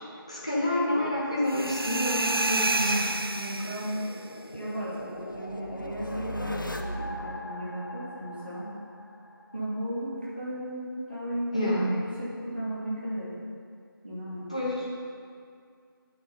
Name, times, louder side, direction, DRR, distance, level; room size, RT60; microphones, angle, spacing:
voice 1, 0.3-3.0 11.5-11.9 14.5-14.9, left 1 dB, 15° left, -6 dB, 1.4 m, -28 dB
sound 1, 1.5-4.2, right 2 dB, 80° right, 0.6 m, -29 dB
voice 2, 2.7-4.0 4.5-8.7 9.5-10.1 10.4-13.4 14.0-14.5, right 1 dB, 25° right, -10 dB, 2.2 m, -35 dB
sound 2, 2.8-9.6, left 1 dB, 60° left, 1.1 m, -39 dB
12.5 x 9.0 x 5.6 m, 2.3 s
figure-of-eight pair, 175°, 12 cm